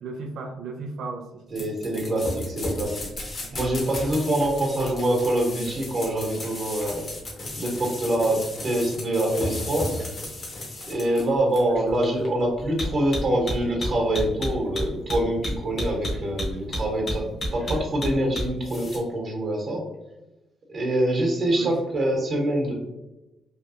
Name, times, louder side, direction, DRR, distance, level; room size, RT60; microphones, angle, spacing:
voice 1, 0.0-1.7 2.7-2.9 3.4-3.6 11.9-12.0 21.5-21.8, right 4 dB, 70° right, 3 dB, 0.4 m, -36 dB
sound 1, 1.5-19.0, left 1 dB, 45° left, 1.0 m, -32 dB
voice 2, 1.5-3.1 3.5-7.0 7.6-10.1 10.9-19.9 20.7-22.7, right 1 dB, 45° right, -1 dB, 1.1 m, -25 dB
3.2 x 2.3 x 2.7 m, 1.0 s
cardioid pair, 90°, 0 cm